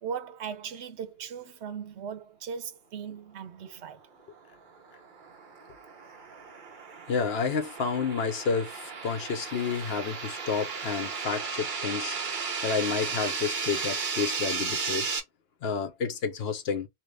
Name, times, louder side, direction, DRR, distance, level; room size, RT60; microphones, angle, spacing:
voice 1, 0.0-4.0, right 7 dB, 80° right, 1.0 m, -38 dB
sound 1, 4.8-15.2, right 5 dB, 50° right, 1.0 m, -34 dB
voice 2, 7.1-12.2 12.6-15.1 15.6-16.9, left 5 dB, 70° left, 1.0 m, -30 dB
2.9 x 2.9 x 3.2 m
omnidirectional pair, 1.1 m